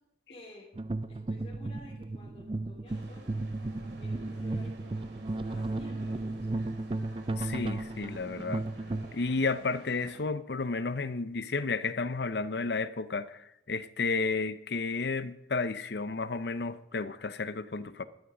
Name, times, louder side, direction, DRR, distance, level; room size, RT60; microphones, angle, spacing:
voice 1, 0.3-0.6 1.1-3.4 4.0-6.7, left 1 dB, 35° left, 3.1 m, -53 dB
sound 1, 0.7-9.1, right 2 dB, 30° right, 0.4 m, -35 dB
sound 2, 2.9-10.2, right 1 dB, 85° right, 3.3 m, -53 dB
voice 2, 7.4-8.7 9.1-18.0, left 4 dB, 65° left, 0.7 m, -32 dB
12.5 x 11.5 x 5.1 m
head